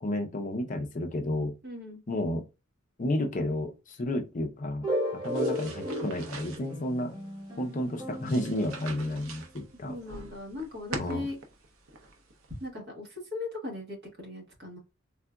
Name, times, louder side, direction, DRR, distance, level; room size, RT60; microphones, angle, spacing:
voice 1, 0.0-1.6 2.1-2.4 3.0-7.2 7.6-10.0 10.9-11.3, left 1 dB, 40° left, 0.5 m, -31 dB
voice 2, 1.6-2.0 9.9-11.4 12.6-14.8, left 2 dB, 55° right, 1.3 m, -38 dB
sound 1, 4.8-9.4, equal, 20° right, 1.3 m, -35 dB
sound 2, 5.2-12.7, right 3 dB, 85° right, 0.6 m, -45 dB
3.6 x 2.4 x 2.2 m
head